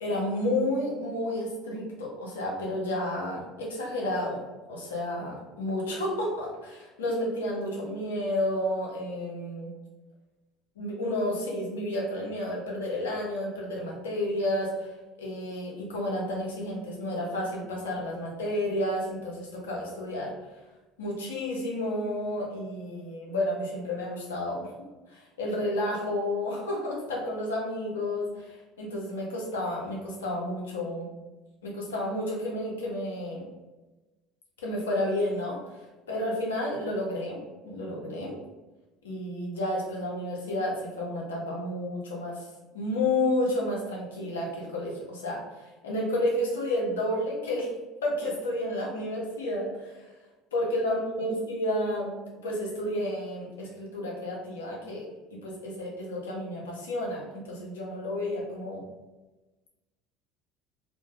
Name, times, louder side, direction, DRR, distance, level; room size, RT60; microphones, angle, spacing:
voice 1, 0.0-4.4 4.7-9.7 10.8-14.9 15.2-20.3 21.0-24.7 25.1-31.1 31.6-33.5 34.6-35.6 36.1-37.4 37.6-38.3 39.0-42.4 42.7-47.7 48.0-50.0 50.5-52.1 52.4-58.8, left 1 dB, 90° left, -2 dB, 0.6 m, -31 dB
2.1 x 2.1 x 2.7 m, 1.1 s
hypercardioid pair, 70°, 0 cm